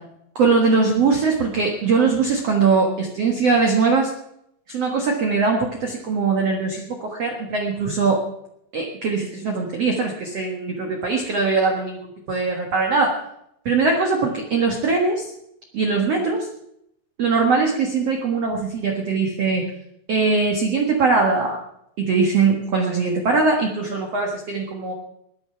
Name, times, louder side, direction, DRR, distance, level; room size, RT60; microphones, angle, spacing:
voice 1, 0.3-4.1 4.7-8.2 8.7-13.2 13.6-15.3 15.7-16.5 17.2-19.7 20.1-21.6 22.0-24.9, right 4 dB, 80° right, 2 dB, 1.4 m, -21 dB
20.0 x 10.5 x 5.8 m, 0.77 s
omnidirectional pair, 5.6 m